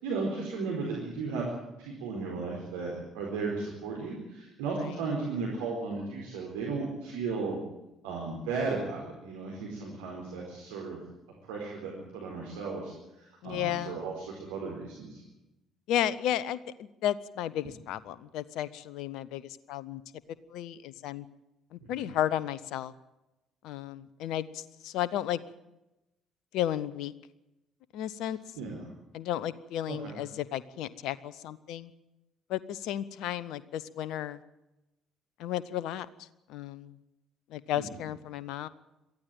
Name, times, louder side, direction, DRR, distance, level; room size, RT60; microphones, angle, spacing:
voice 1, 0.0-1.4 1.8-7.6 8.0-11.0 11.4-15.2 22.0-22.1 28.6-28.8 29.9-30.1 37.7-37.9, right 4 dB, 70° right, -2 dB, 4.4 m, -35 dB
voice 2, 13.4-14.0 15.9-20.0 20.5-21.3 21.7-22.9 23.6-25.4 26.5-27.1 27.9-28.4 29.1-31.9 32.5-34.4 35.4-36.9 37.5-38.7, left 11 dB, 65° left, 18 dB, 0.9 m, -33 dB
23.0 x 14.5 x 9.1 m, 0.94 s
figure-of-eight pair, 50°, 0 cm